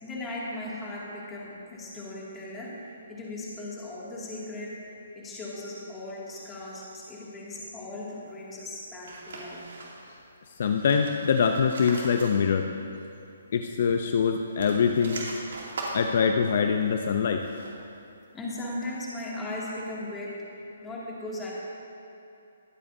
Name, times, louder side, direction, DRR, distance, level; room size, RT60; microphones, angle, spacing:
voice 1, 0.0-9.7 18.3-21.5, left 1 dB, 10° left, -6 dB, 2.3 m, -38 dB
sound 1, 9.0-10.2 10.6-12.8 13.1-13.2 14.4-17.9, right 2 dB, 70° right, 2.6 m, -41 dB
voice 2, 10.6-12.7 13.5-15.2 15.9-17.4, left 6 dB, 55° left, 5 dB, 0.6 m, -24 dB
22.5 x 8.5 x 2.7 m, 2.8 s
hypercardioid pair, 155°, 0 cm